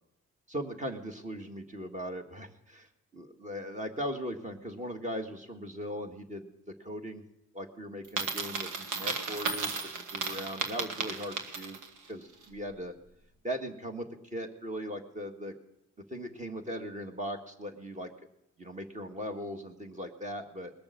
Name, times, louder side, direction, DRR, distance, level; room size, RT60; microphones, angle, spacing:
voice 1, 0.5-7.2 7.5-9.8 10.1-11.8 12.1-12.9 13.4-14.1 14.3-15.5 16.1-18.1 18.6-20.7, equal, 25° right, 4 dB, 1.9 m, -39 dB
Coin (dropping), 8.0-12.0, right 4 dB, 90° right, 1.5 m, -34 dB
20.5 x 7.0 x 6.9 m, 0.81 s
cardioid pair, 90°, 30 cm